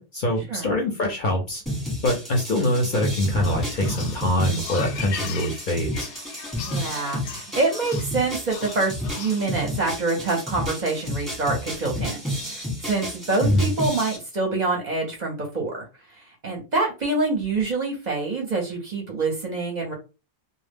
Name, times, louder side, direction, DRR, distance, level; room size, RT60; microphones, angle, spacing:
voice 1, 0.0-1.6 2.0-6.1 13.4-13.6, left 1 dB, 55° left, 1 dB, 0.6 m, -24 dB
sound 1, 1.7-14.2, equal, ahead, 0.9 m, -31 dB
sound 2, 3.4-9.4, left 8 dB, 80° left, 0.9 m, -39 dB
voice 2, 6.6-15.8 16.1-19.9, right 3 dB, 45° right, 0 dB, 0.6 m, -26 dB
2.0 x 2.0 x 3.3 m, 0.30 s
omnidirectional pair, 1.2 m